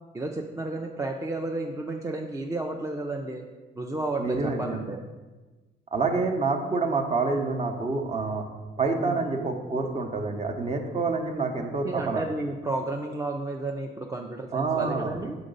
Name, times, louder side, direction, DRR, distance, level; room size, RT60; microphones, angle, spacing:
voice 1, 0.1-3.5 3.8-5.0 9.0-9.2 11.8-15.4, right 2 dB, 15° right, 1 dB, 0.4 m, -32 dB
voice 2, 4.2-4.8 5.9-8.4 8.8-12.2 14.5-15.1, right 4 dB, 35° right, 4 dB, 0.8 m, -27 dB
5.2 x 3.9 x 5.2 m, 1.3 s
cardioid pair, 90°, 20 cm